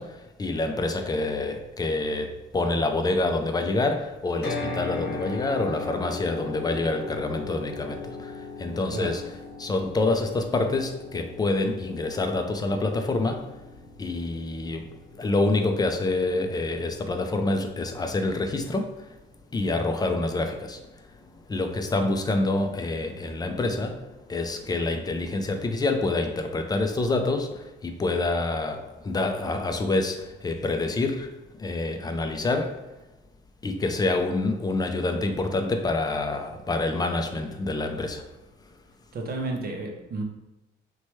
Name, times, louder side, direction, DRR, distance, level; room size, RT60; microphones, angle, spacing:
voice 1, 0.0-9.2 9.6-13.6 14.0-14.9 15.2-19.1 19.5-32.8 33.6-38.3, left 2 dB, 20° left, 5 dB, 0.4 m, -27 dB
sound 1, 4.4-18.5, left 3 dB, 55° left, 0.7 m, -39 dB
voice 2, 8.9-9.2 22.0-22.1 39.1-40.2, right 2 dB, 50° right, 2 dB, 0.6 m, -32 dB
2.9 x 2.2 x 3.0 m, 1.0 s
cardioid pair, 90°, 20 cm